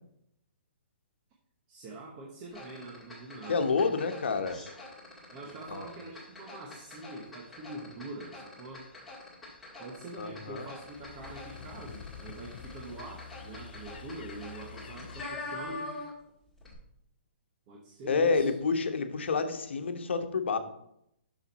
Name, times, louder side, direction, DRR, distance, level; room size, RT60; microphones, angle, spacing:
voice 1, 1.7-3.7 5.3-8.9 9.8-15.9 17.7-18.5, right 2 dB, 25° right, 0 dB, 1.0 m, -44 dB
sound 1, 2.5-16.3 16.6-16.7, left 2 dB, 5° left, 1.8 m, -45 dB
voice 2, 3.5-4.6 5.7-5.9 10.2-10.7 18.1-20.6, left 4 dB, 80° left, 7 dB, 1.1 m, -29 dB
sound 2, 10.3-15.3, left 7 dB, 60° left, 0.5 m, -47 dB
7.5 x 6.2 x 4.2 m, 0.75 s
hypercardioid pair, 165°, 6 cm